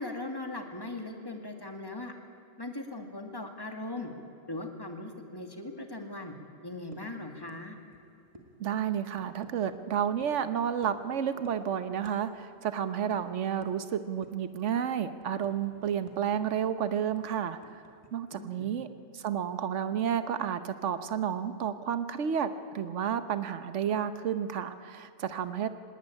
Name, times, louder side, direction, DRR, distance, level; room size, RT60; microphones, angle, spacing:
voice 1, 0.0-2.1 2.6-4.1 4.5-6.3 6.6-7.8 18.3-18.7, left 2 dB, 20° left, 5 dB, 2.1 m, -39 dB
sound 1, 6.9-7.1 7.5-7.6 7.9-8.0 8.3-8.5 9.1-9.7 10.2-10.4 10.8-11.1 11.4-11.6 12.0-12.2 12.5-12.6 13.1-13.2 13.6-13.7 14.2-14.5 14.9-16.4 16.6-16.7 17.2-18.1, right 1 dB, 25° right, 2.3 m, -53 dB
voice 2, 8.6-17.8 18.1-18.9 19.1-25.7, right 8 dB, 80° right, 12 dB, 1.3 m, -31 dB
19.0 x 18.5 x 9.8 m, 2.7 s
omnidirectional pair, 1.2 m